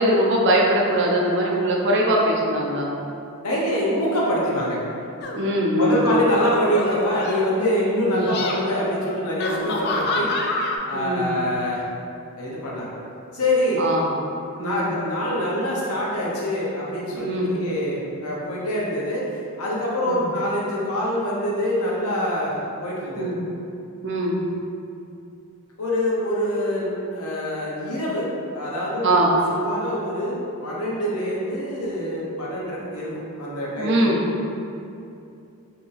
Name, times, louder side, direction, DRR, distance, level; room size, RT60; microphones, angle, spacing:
voice 1, 0.0-2.9 5.3-6.0 8.0-8.2 10.9-11.3 13.8-14.1 14.6-14.9 17.1-17.5 20.1-20.2 23.2-23.4 24.0-24.4 29.0-29.3 33.8-34.2, right 1 dB, 55° right, -2 dB, 0.5 m, -21 dB
voice 2, 3.4-4.8 5.8-10.5 10.8-11.8 12.4-12.9 13.3-13.8 14.6-23.3 25.8-28.3 28.5-29.1 29.5-34.2, left 1 dB, 75° left, -5 dB, 0.8 m, -25 dB
sound 1, 5.2-5.5 6.2-7.6 8.1-8.6 9.4-10.8, left 2 dB, 50° left, 0.3 m, -27 dB
2.8 x 2.6 x 3.9 m, 2.6 s
head